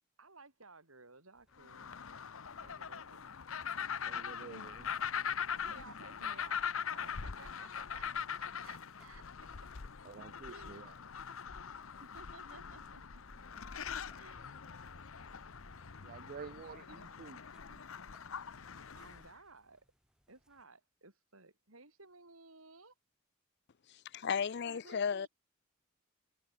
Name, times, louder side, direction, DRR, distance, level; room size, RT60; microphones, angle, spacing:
voice 1, 0.2-2.0 2.6-3.3 5.5-9.2 10.5-10.9 12.0-13.2 14.1-14.6 18.9-19.8 20.3-22.9 24.7-25.3, right 3 dB, 80° right, 6.5 m, -57 dB
sound 1, 1.3-20.6, equal, 5° right, 7.4 m, -74 dB
sound 2, 1.6-19.3, left 7 dB, 75° left, 0.9 m, -42 dB
voice 2, 4.1-4.9 10.0-10.9 16.0-17.8, right 6 dB, 45° right, 0.3 m, -50 dB
sound 3, 11.5-17.3, equal, 20° left, 2.0 m, -62 dB
voice 3, 24.1-25.3, left 6 dB, 55° left, 0.5 m, -34 dB
head